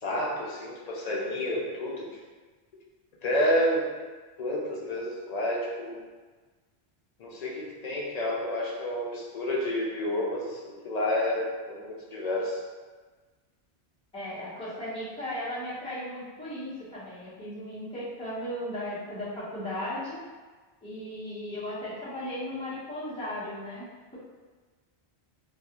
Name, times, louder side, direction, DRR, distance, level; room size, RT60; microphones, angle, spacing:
voice 1, 0.0-2.1 3.2-3.9 4.4-6.0 7.2-12.6, left 1 dB, 55° left, -4 dB, 0.5 m, -29 dB
voice 2, 14.1-20.2 20.8-23.9, left 1 dB, 5° left, -12 dB, 0.8 m, -36 dB
2.3 x 2.3 x 2.8 m, 1.4 s
omnidirectional pair, 1.1 m